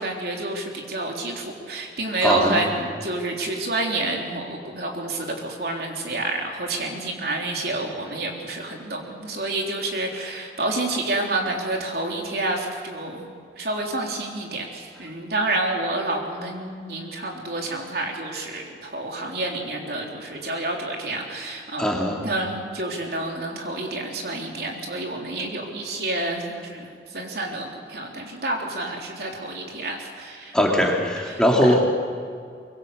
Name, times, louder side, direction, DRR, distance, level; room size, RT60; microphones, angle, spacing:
voice 1, 0.0-13.3 13.6-22.0 22.2-30.7 31.3-31.8, right 2 dB, 60° right, 0 dB, 3.9 m, -29 dB
voice 2, 2.2-2.7 21.8-22.2 30.5-31.8, equal, 5° left, -1 dB, 2.9 m, -20 dB
24.5 x 23.5 x 6.9 m, 2.3 s
head